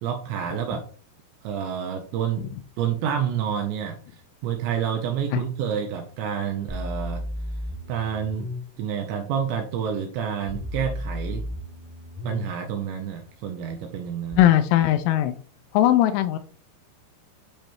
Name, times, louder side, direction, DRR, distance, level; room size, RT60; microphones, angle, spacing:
voice 1, 0.0-0.9 1.4-2.5 2.8-7.2 7.9-8.5 8.8-11.4 12.2-14.5, right 8 dB, 90° right, 4 dB, 2.6 m, -28 dB
sound 1, 6.7-8.6 10.5-12.5 14.3-14.4, left 1 dB, 30° right, 1.0 m, -33 dB
voice 2, 14.4-15.4 15.7-16.4, left 13 dB, 85° left, 7 dB, 2.9 m, -19 dB
8.8 x 5.2 x 3.0 m, 0.42 s
omnidirectional pair, 5.9 m